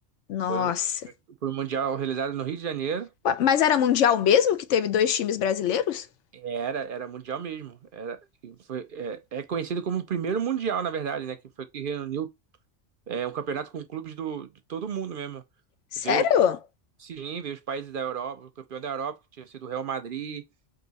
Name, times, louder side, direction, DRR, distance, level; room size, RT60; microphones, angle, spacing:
voice 1, 0.3-0.9 3.2-6.1 15.9-16.6, left 8 dB, 80° left, 0.9 m, -22 dB
voice 2, 1.4-3.1 6.3-12.3 13.1-15.4 16.0-16.3 17.0-20.4, right 7 dB, 60° right, 0.7 m, -32 dB
4.8 x 2.7 x 4.0 m
omnidirectional pair, 1.2 m